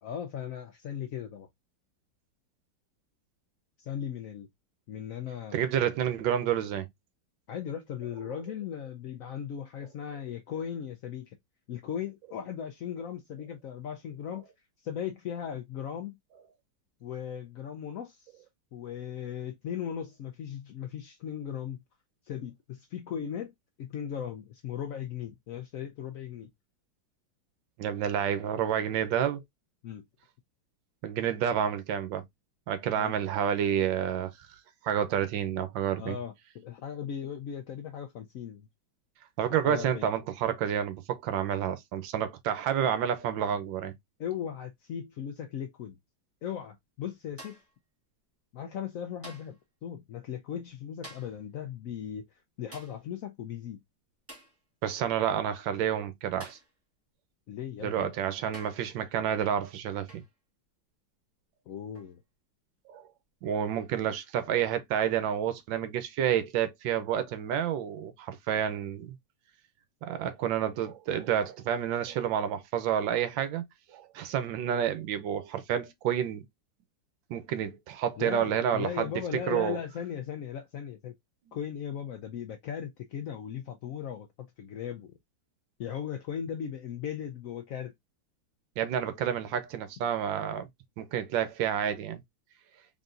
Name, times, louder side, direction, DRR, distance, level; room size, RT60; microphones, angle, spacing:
voice 1, 0.0-1.5 3.8-4.5 4.9-5.6 7.5-11.4 11.7-14.4 14.8-16.2 17.0-18.4 18.7-21.8 22.2-23.5 23.8-26.5 29.8-30.0 33.0-33.1 36.0-38.7 39.6-40.1 44.2-46.0 46.4-47.6 48.5-53.8 57.5-58.1 61.7-62.2 78.2-81.1 81.5-84.3 84.6-85.2 85.8-87.9, left 9 dB, 85° left, 0.7 m, -37 dB
voice 2, 5.5-6.9 27.8-29.4 31.0-32.2 32.7-34.5 34.8-36.2 39.4-43.9 54.8-56.6 57.8-60.2 62.9-63.0 63.4-69.2 70.0-73.6 73.9-76.5 77.3-79.1 79.5-79.8 88.8-90.7 91.0-92.2, right 9 dB, 80° right, 1.4 m, -29 dB
sound 1, 47.4-47.8 49.2-49.6 51.0-51.4 52.7-53.0 54.3-54.6 56.4-56.7 57.8-57.9 58.5-58.9 60.1-60.3 61.9-62.1, right 1 dB, 10° right, 1.2 m, -49 dB
4.0 x 3.5 x 2.5 m
omnidirectional pair, 2.1 m